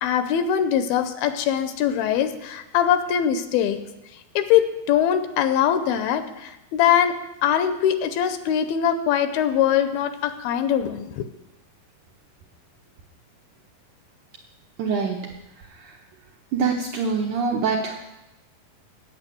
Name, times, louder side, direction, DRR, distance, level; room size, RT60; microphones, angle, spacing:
voice 1, 0.0-3.8 4.4-7.1 7.4-11.2, left 9 dB, 80° left, 9 dB, 2.4 m, -22 dB
voice 2, 14.8-15.2 16.5-18.1, right 5 dB, 75° right, 0 dB, 1.9 m, -24 dB
8.8 x 8.8 x 7.6 m, 0.98 s
omnidirectional pair, 4.5 m